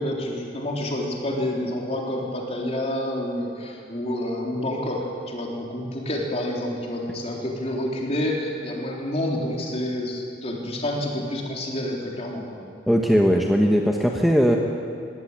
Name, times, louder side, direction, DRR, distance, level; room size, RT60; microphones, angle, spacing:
voice 1, 0.0-12.6, left 1 dB, 35° left, -1 dB, 3.7 m, -28 dB
voice 2, 12.9-14.6, equal, ahead, 0 dB, 1.2 m, -19 dB
21.0 x 16.5 x 8.9 m, 2.5 s
head